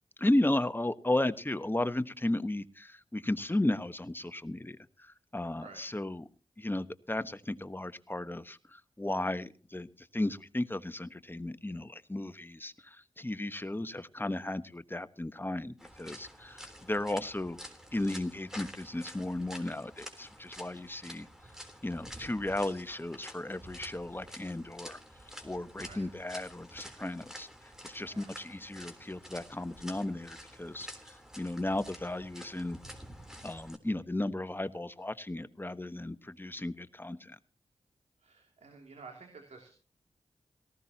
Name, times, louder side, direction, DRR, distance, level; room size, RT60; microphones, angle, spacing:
voice 1, 0.2-6.3 6.6-17.6 17.9-21.3 21.8-25.0 25.4-27.5 27.8-30.9 31.4-32.8 33.4-37.4, left 1 dB, 20° left, 11 dB, 1.2 m, -34 dB
sound 1, 15.8-33.8, equal, 5° right, 3.5 m, -49 dB
voice 2, 28.0-28.3 38.2-39.7, right 4 dB, 80° right, 2 dB, 2.8 m, -51 dB
18.0 x 15.0 x 2.9 m, 0.39 s
cardioid pair, 40°, 11 cm